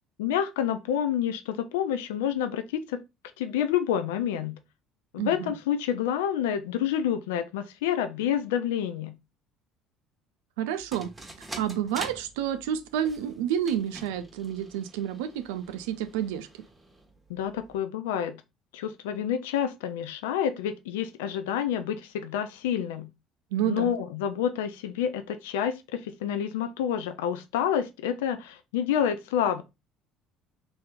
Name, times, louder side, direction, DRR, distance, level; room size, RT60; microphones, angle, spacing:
voice 1, 0.2-3.0 3.4-4.6 5.1-9.1 17.3-18.4 18.7-23.1 23.7-29.6, left 9 dB, 75° left, 0.3 m, -28 dB
voice 2, 5.2-5.5 10.6-11.1 11.6-16.5 23.5-23.9, right 10 dB, 75° right, 0.4 m, -29 dB
sound 1, 10.7-17.8, right 2 dB, 15° right, 1.0 m, -46 dB
2.9 x 2.7 x 3.4 m
hypercardioid pair, 60°, 0 cm